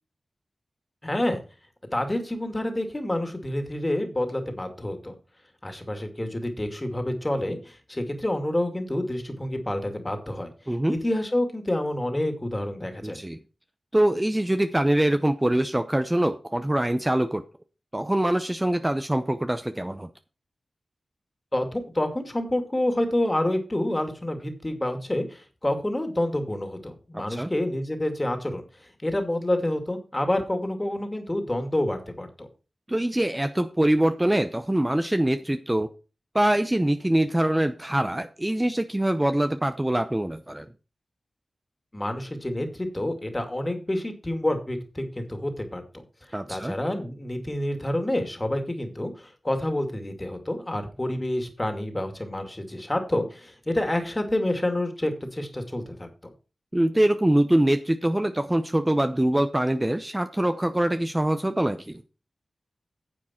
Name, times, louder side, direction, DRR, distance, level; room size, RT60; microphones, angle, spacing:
voice 1, 1.0-1.4 1.9-5.1 5.6-10.5 10.9-13.2 21.5-32.5 41.9-45.8 46.5-56.3, left 1 dB, 25° left, 6 dB, 2.4 m, -28 dB
voice 2, 13.0-13.4 13.9-17.4 17.9-20.1 27.1-27.5 32.9-35.9 36.3-40.7 46.3-46.7 56.7-62.0, right 1 dB, 15° right, 8 dB, 0.7 m, -24 dB
9.9 x 7.2 x 4.4 m, 0.33 s
cardioid pair, 50°, 0 cm